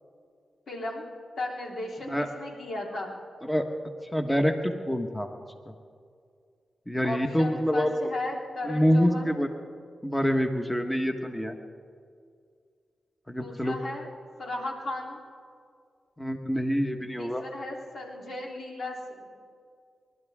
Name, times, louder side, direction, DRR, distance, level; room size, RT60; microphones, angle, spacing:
voice 1, 0.7-1.0 1.4-3.1 7.0-9.3 13.4-14.1 14.4-15.2 17.2-19.3, left 2 dB, 70° left, -2 dB, 3.6 m, -35 dB
voice 2, 4.1-5.3 5.7-5.8 6.9-7.9 8.6-9.5 10.0-11.5 13.3-13.8 16.2-17.4, equal, 10° left, 4 dB, 1.4 m, -26 dB
28.5 x 12.0 x 3.7 m, 2.2 s
supercardioid pair, 45°, 0 cm